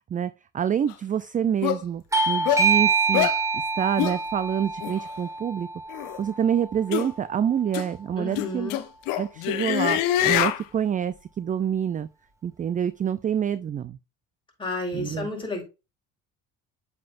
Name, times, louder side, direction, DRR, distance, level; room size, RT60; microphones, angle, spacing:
voice 1, 0.1-5.7 6.2-8.7 9.2-12.1 12.4-14.0 14.9-15.3, right 8 dB, 25° right, 0.4 m, -27 dB
sound 1, 0.9-1.0 1.6-1.8 2.5-2.6 3.1-3.4 4.0-4.2 4.8-4.9 5.9-6.2 6.9-7.1 7.7-7.9 8.3-10.6, left 13 dB, 80° left, 0.8 m, -25 dB
Bell / Doorbell, 2.1-7.3, right 4 dB, 10° right, 1.5 m, -26 dB
voice 2, 8.2-8.8 14.6-15.6, left 2 dB, 15° left, 4.5 m, -31 dB
7.5 x 5.9 x 2.5 m
supercardioid pair, 90°, 33 cm